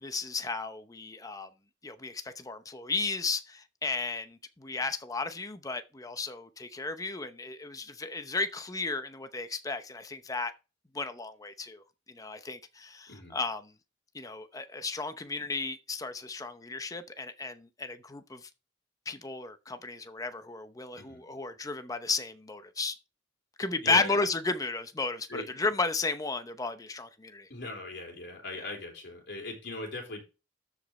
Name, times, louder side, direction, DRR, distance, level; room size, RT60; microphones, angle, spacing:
voice 1, 0.0-1.5 1.8-10.5 10.9-13.6 14.1-18.5 19.1-22.9 23.6-27.5, left 3 dB, 20° left, 0.7 m, -34 dB
voice 2, 23.8-24.2 25.3-25.6 27.5-30.2, left 2 dB, 60° left, 3.7 m, -40 dB
13.5 x 5.1 x 3.2 m
head